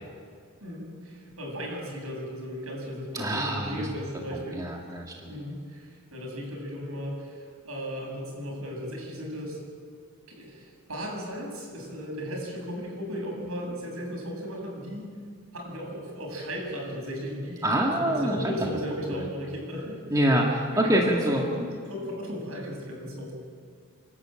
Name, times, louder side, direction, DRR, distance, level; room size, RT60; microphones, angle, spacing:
voice 1, 0.6-4.7 5.2-9.6 10.3-15.1 15.5-20.0 20.7-23.3, equal, 75° right, -1 dB, 7.6 m, -36 dB
voice 2, 3.1-3.9 4.5-5.3 17.6-18.5 19.1-19.2 20.1-21.4, right 1 dB, 15° right, -1 dB, 2.0 m, -25 dB
29.5 x 12.0 x 8.9 m, 2.1 s
head